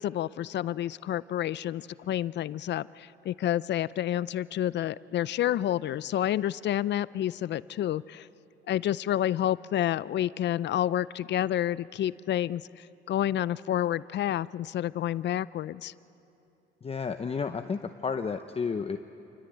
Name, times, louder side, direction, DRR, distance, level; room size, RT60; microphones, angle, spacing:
voice 1, 0.0-8.3 8.7-15.9, left 12 dB, 60° left, 19 dB, 0.4 m, -29 dB
voice 2, 16.8-19.0, left 5 dB, 30° left, 8 dB, 0.7 m, -31 dB
28.0 x 14.5 x 9.0 m, 2.8 s
cardioid pair, 90°, 20 cm